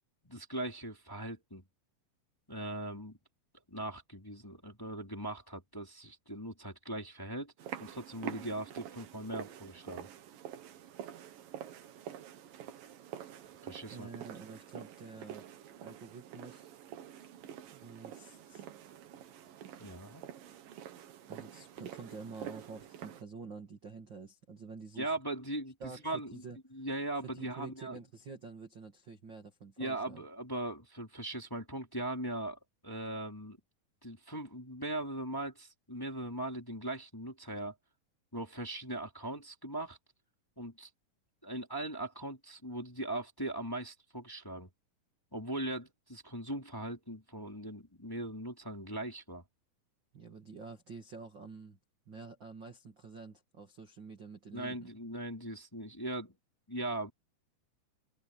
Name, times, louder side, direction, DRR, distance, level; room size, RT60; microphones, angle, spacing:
voice 1, 0.2-1.6 2.5-3.2 3.7-7.5 7.8-10.1 13.6-14.1 19.8-20.2 25.0-25.7 26.0-26.4 26.7-28.0 29.8-33.6 34.0-37.7 38.3-40.0 40.6-40.9 41.4-44.7 45.3-49.4 54.5-56.4 56.7-57.1, right 1 dB, 5° left, 2.5 m, -39 dB
sound 1, 7.6-23.2, right 10 dB, 65° right, 2.5 m, -47 dB
voice 2, 13.9-15.4 15.8-16.7 17.7-18.7 21.3-25.1 25.8-26.6 27.2-30.2 50.1-51.8 52.0-54.9, right 4 dB, 40° right, 1.8 m, -48 dB
omnidirectional pair, 5.7 m